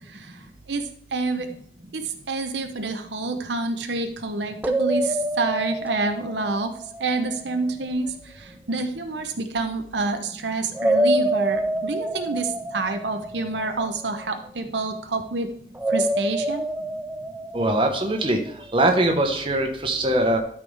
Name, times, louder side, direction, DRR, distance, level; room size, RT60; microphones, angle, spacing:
voice 1, 0.1-1.5 1.9-6.7 7.0-15.5 15.9-16.7, right 3 dB, 80° right, 6 dB, 0.9 m, -28 dB
sound 1, 4.6-7.6 10.7-14.1 15.8-18.5, right 1 dB, 10° right, 0.4 m, -27 dB
voice 2, 17.5-18.4 18.7-20.4, right 1 dB, 30° right, 3 dB, 1.2 m, -21 dB
12.5 x 4.8 x 3.5 m, 0.65 s
head